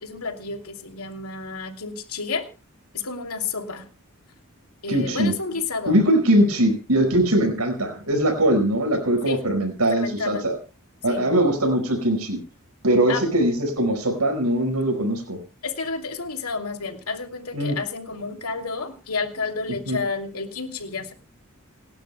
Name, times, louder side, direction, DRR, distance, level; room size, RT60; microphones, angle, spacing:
voice 1, 0.0-2.5 2.9-3.9 4.8-6.2 9.2-9.4 9.9-10.5 11.1-11.2 13.1-13.2 15.6-21.1, left 4 dB, 80° left, 5 dB, 2.8 m, -30 dB
voice 2, 4.9-5.3 5.9-10.6 11.0-12.4 12.8-15.4 17.5-17.8 19.9-20.0, right 1 dB, 85° right, 5 dB, 5.0 m, -21 dB
29.0 x 11.5 x 2.2 m, 0.31 s
head